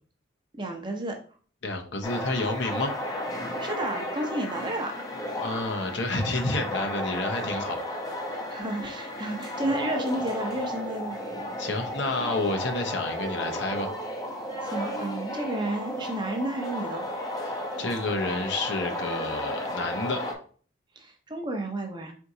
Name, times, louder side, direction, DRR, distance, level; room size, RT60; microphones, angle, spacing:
voice 1, 0.5-1.2 3.4-4.9 7.4-7.6 8.2-11.2 14.6-17.1 21.0-22.1, right 1 dB, 25° right, 4 dB, 0.6 m, -32 dB
voice 2, 1.6-2.9 5.4-7.8 11.6-13.9 17.4-20.4, left 2 dB, 65° left, 4 dB, 0.7 m, -30 dB
sound 1, 2.0-20.3, left 1 dB, 20° left, 0.6 m, -33 dB
4.4 x 3.7 x 2.7 m, 0.42 s
head